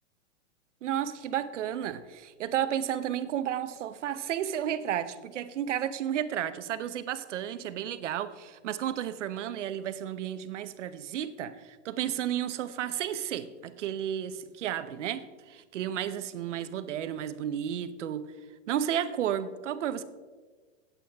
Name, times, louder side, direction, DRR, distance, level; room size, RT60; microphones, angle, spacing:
voice 1, 0.8-18.3 18.7-20.0, right 10 dB, 80° right, 0.9 m, -32 dB
16.0 x 8.5 x 3.5 m
hypercardioid pair, 130°, 36 cm